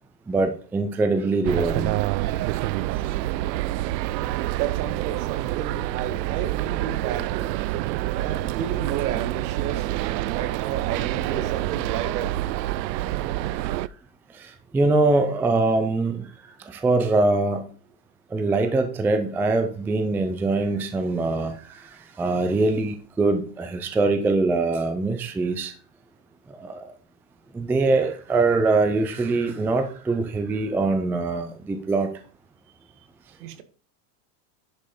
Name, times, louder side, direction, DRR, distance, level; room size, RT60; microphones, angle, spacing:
voice 1, 0.3-1.9 14.7-16.3 16.7-17.6 18.3-21.5 22.2-25.7 26.6-26.9 27.5-32.1, right 3 dB, 5° right, 0.4 m, -23 dB
sound 1, 1.4-13.9, right 15 dB, 90° right, 0.6 m, -27 dB
voice 2, 4.5-7.6 8.1-9.9 10.3-12.4 33.4-33.6, right 9 dB, 65° right, 1.8 m, -32 dB
10.5 x 5.3 x 5.4 m
supercardioid pair, 145°, 49 cm